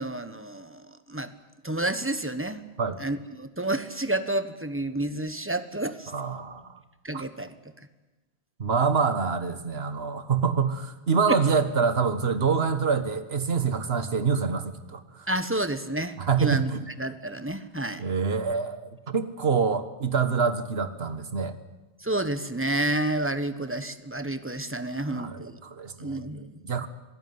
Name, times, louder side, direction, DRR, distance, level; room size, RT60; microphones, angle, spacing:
voice 1, 0.0-1.3 1.6-2.6 3.0-6.1 7.0-7.5 11.3-11.4 15.3-16.7 17.0-18.0 22.0-25.5 26.0-26.9, right 1 dB, 10° right, 11 dB, 1.3 m, -30 dB
voice 2, 6.1-6.8 7.1-7.2 8.6-15.3 16.2-16.8 18.0-21.6 25.1-26.9, right 5 dB, 65° right, 11 dB, 1.7 m, -26 dB
26.5 x 17.5 x 9.7 m, 1.2 s
omnidirectional pair, 1.1 m